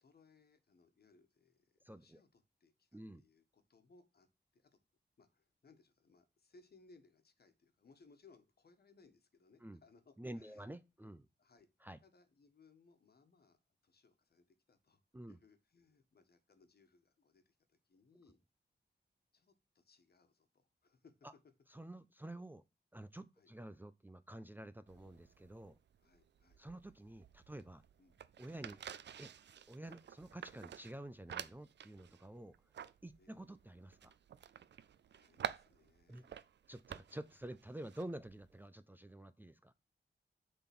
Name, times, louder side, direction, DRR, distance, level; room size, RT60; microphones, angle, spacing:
voice 1, 0.0-4.3 4.5-4.7 5.2-10.7 11.4-11.7 12.0-15.0 15.3-18.4 19.3-21.1 23.3-23.5 26.0-26.6 28.0-28.2 28.7-28.8 33.2-33.4 35.1-36.4, left 4 dB, 60° left, 1.4 m, -67 dB
voice 2, 1.8-2.2 2.9-3.2 9.6-9.8 10.2-11.3 11.8-12.0 15.1-15.4 21.2-21.3 21.7-22.6 22.9-25.8 26.6-27.8 28.4-28.8 29.2-29.3 29.7-32.5 33.0-34.1 36.1-36.3 36.7-39.7, right 1 dB, 10° right, 0.5 m, -49 dB
sound 1, 24.9-38.7, right 9 dB, 75° right, 0.5 m, -50 dB
6.9 x 3.9 x 6.0 m
wide cardioid pair, 100°, 18 cm